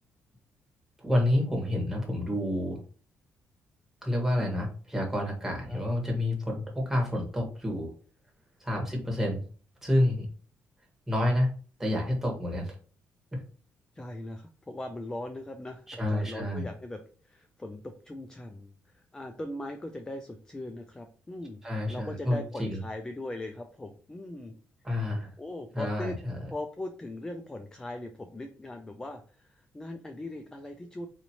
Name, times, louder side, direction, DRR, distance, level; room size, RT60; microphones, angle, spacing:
voice 1, 1.0-2.8 4.0-7.9 8.6-9.4 9.8-10.3 11.1-11.5 11.8-12.8 13.3-13.4 15.9-16.7 21.6-22.8 24.8-25.3 25.7-26.4, left 1 dB, 5° right, -1 dB, 1.5 m, -29 dB
voice 2, 13.9-21.6 21.9-24.6 25.4-26.2 26.5-31.1, left 1 dB, 15° left, 6 dB, 0.4 m, -40 dB
4.3 x 2.7 x 2.9 m, 0.40 s
cardioid pair, 110°, 5 cm